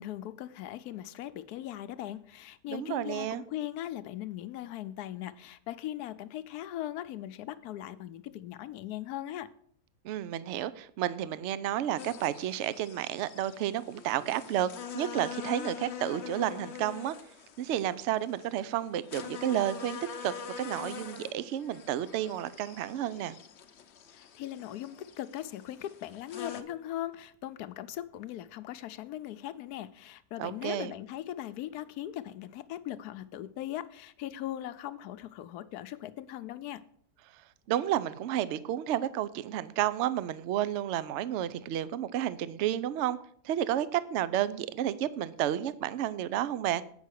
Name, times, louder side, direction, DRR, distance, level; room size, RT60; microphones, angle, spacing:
voice 1, 0.0-9.5 24.1-36.8, left 12 dB, 75° left, 1.1 m, -39 dB
voice 2, 2.7-3.4 10.0-17.2 17.6-23.3 30.4-30.9 37.7-43.2 43.4-46.8, right 12 dB, 75° right, 0.6 m, -31 dB
sound 1, 12.0-26.6, left 7 dB, 55° left, 0.8 m, -44 dB
8.2 x 5.6 x 6.4 m
omnidirectional pair, 1.8 m